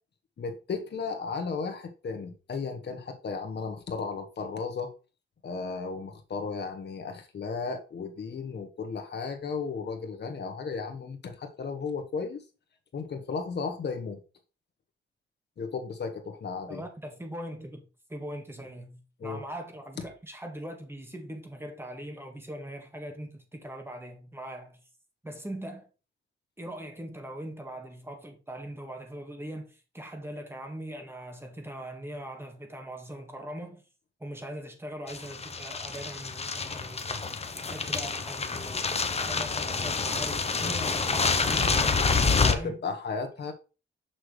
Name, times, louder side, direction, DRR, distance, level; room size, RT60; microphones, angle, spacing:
voice 1, 0.4-4.9 5.4-12.4 12.9-14.2 15.6-16.8 19.2-19.4 42.4-43.5, left 5 dB, 55° left, 1.4 m, -34 dB
voice 2, 16.7-17.8 18.1-24.8 25.2-25.9 26.6-33.8 34.2-42.0 42.5-42.8, right 1 dB, 10° right, 1.7 m, -41 dB
sound 1, 35.1-42.5, left 4 dB, 30° left, 0.8 m, -28 dB
6.4 x 6.0 x 3.3 m
cardioid pair, 100°, 21 cm